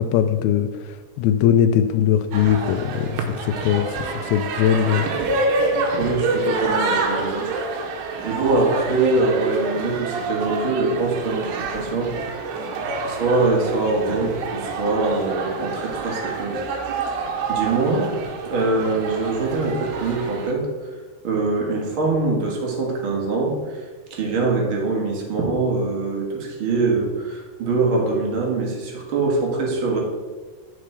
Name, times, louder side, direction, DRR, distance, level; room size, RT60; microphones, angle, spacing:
voice 1, 0.0-5.1, left 9 dB, 85° left, 8 dB, 2.2 m, -20 dB
sound 1, 2.3-20.5, right 3 dB, 85° right, 3.1 m, -27 dB
voice 2, 5.9-7.9 8.2-12.7 13.1-16.6 17.0-17.2 17.5-20.9 21.2-30.0, right 3 dB, 60° right, -2 dB, 1.3 m, -23 dB
12.0 x 4.5 x 4.9 m, 1.4 s
omnidirectional pair, 4.9 m